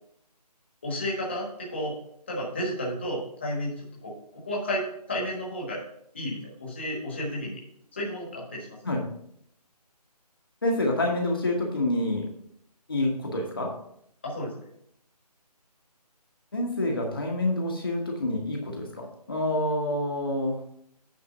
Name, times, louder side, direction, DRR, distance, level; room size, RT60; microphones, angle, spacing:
voice 1, 0.8-1.9 2.3-4.1 4.4-5.8 6.1-7.6 7.9-8.8 14.2-14.7, equal, 15° left, -4 dB, 1.4 m, -32 dB
voice 2, 10.6-12.3 12.9-13.7 16.5-20.6, left 1 dB, 35° left, -1 dB, 1.3 m, -27 dB
9.2 x 3.4 x 6.8 m, 0.70 s
figure-of-eight pair, 180°, 21 cm